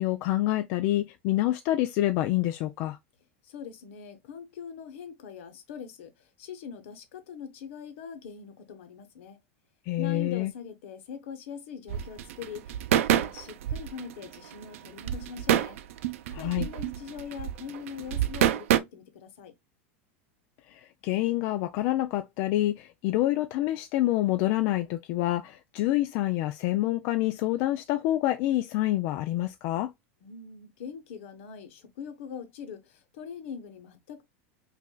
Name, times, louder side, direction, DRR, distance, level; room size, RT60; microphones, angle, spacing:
voice 1, 0.0-3.0 9.9-10.5 16.3-16.7 20.7-29.9, left 15 dB, 45° left, 0.3 m, -27 dB
voice 2, 3.4-9.4 10.0-15.8 16.4-19.5 30.2-34.2, left 7 dB, 70° left, 1.0 m, -42 dB
sound 1, 11.9-18.8, right 11 dB, 80° right, 0.5 m, -27 dB
5.2 x 2.6 x 2.2 m
supercardioid pair, 155°, 7 cm